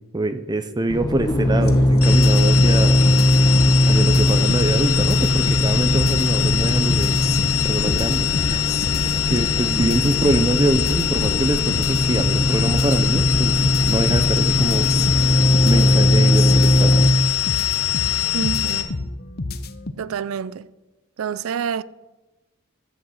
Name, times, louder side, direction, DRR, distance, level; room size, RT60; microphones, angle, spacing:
voice 1, 0.1-3.0 3.9-7.2 7.6-8.6 9.3-13.6 13.9-14.9 15.6-17.0, right 2 dB, 20° right, 0.5 m, -24 dB
sound 1, 0.9-17.1, left 1 dB, 20° left, 0.9 m, -19 dB
sound 2, 1.6-19.9, left 2 dB, 45° left, 0.7 m, -30 dB
sound 3, 2.0-18.8, left 12 dB, 80° left, 1.2 m, -24 dB
voice 2, 18.3-18.9 20.0-20.7 21.2-21.8, right 7 dB, 75° right, 0.4 m, -27 dB
12.5 x 6.3 x 7.8 m
head